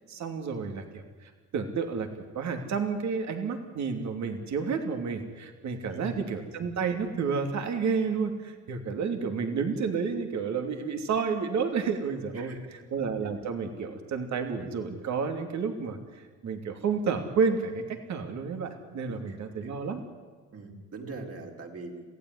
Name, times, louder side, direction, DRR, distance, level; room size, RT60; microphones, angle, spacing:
voice 1, 0.1-2.1 2.3-12.5 12.9-20.0, right 5 dB, 65° right, 5 dB, 2.9 m, -30 dB
voice 2, 12.3-12.9 19.1-19.7 20.5-22.0, right 3 dB, 50° right, 1 dB, 4.5 m, -42 dB
26.5 x 16.5 x 9.8 m, 1.4 s
cardioid pair, 90°, 30 cm